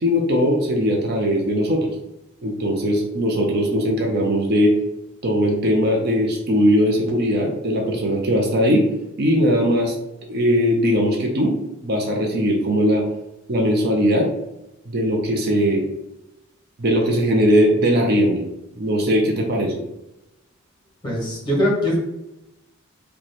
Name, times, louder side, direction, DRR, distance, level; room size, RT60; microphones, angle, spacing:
voice 1, 0.0-1.9 2.4-4.7 5.2-8.9 9.2-9.9 10.3-11.5 11.8-13.0 13.5-14.3 14.9-15.8 16.8-18.4 18.8-19.7, equal, 50° right, 1 dB, 0.6 m, -19 dB
voice 2, 21.0-22.0, equal, 20° left, -4 dB, 1.4 m, -21 dB
3.0 x 2.2 x 4.0 m, 0.92 s
head